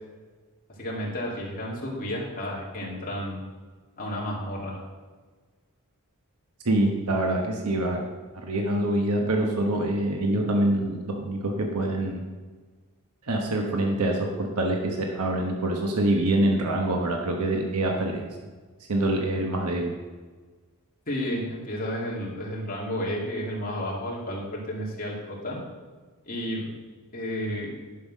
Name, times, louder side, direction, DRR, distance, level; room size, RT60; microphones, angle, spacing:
voice 1, 0.8-3.4 4.0-4.8 21.1-25.6 26.2-26.7 27.1-27.7, equal, 40° left, -4 dB, 2.5 m, -32 dB
voice 2, 6.6-8.0 8.4-12.2 13.3-18.3 18.9-19.9, right 1 dB, 90° right, 1 dB, 1.1 m, -25 dB
10.5 x 5.8 x 6.2 m, 1.4 s
head